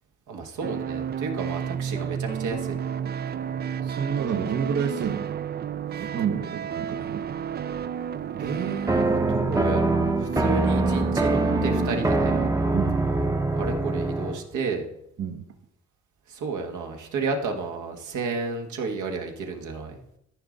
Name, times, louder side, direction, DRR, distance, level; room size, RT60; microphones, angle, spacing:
voice 1, 0.3-2.8 5.9-6.0 8.4-12.4 13.5-14.9 16.3-20.0, right 4 dB, 80° right, 3 dB, 1.6 m, -31 dB
sound 1, 0.6-12.5, right 8 dB, 35° right, 0.4 m, -31 dB
voice 2, 3.8-5.3 6.0-7.2 10.5-10.6 12.7-13.1 15.2-15.4, right 7 dB, 50° right, 4 dB, 0.9 m, -29 dB
sound 2, 8.9-14.4, right 2 dB, 10° right, 0.7 m, -24 dB
13.5 x 5.3 x 3.9 m, 0.79 s
cardioid pair, 90°, 30 cm